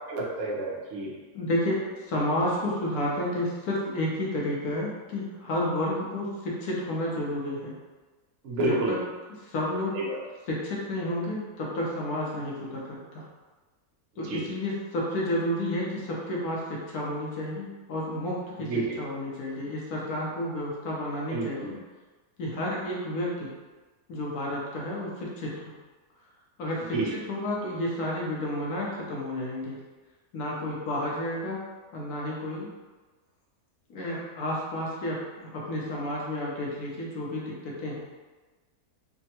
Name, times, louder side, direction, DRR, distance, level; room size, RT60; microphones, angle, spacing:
voice 1, 0.1-1.1 8.4-8.9 9.9-10.2 14.3-14.4 18.7-18.8 21.3-21.7 26.9-27.1, right 2 dB, 60° right, -3 dB, 0.8 m, -29 dB
voice 2, 1.3-7.8 8.6-9.0 9.3-10.0 10.5-13.2 14.2-21.7 22.4-23.5 24.1-25.7 26.6-29.8 30.3-31.6 31.9-32.7 33.9-38.0, left 1 dB, 75° left, -4 dB, 1.1 m, -31 dB
3.4 x 2.1 x 2.7 m, 1.3 s
omnidirectional pair, 1.7 m